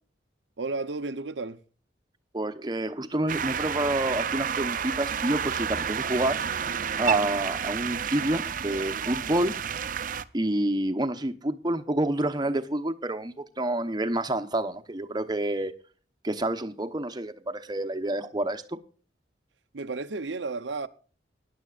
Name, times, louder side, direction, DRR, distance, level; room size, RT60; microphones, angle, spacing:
voice 1, 0.6-1.6 19.7-20.9, right 3 dB, 85° right, 0.8 m, -32 dB
voice 2, 2.3-6.4 7.0-9.5 10.3-15.7 16.2-18.8, right 1 dB, 25° right, 0.9 m, -28 dB
sound 1, 3.3-10.2, right 7 dB, 50° right, 0.6 m, -30 dB
19.5 x 10.5 x 2.4 m
head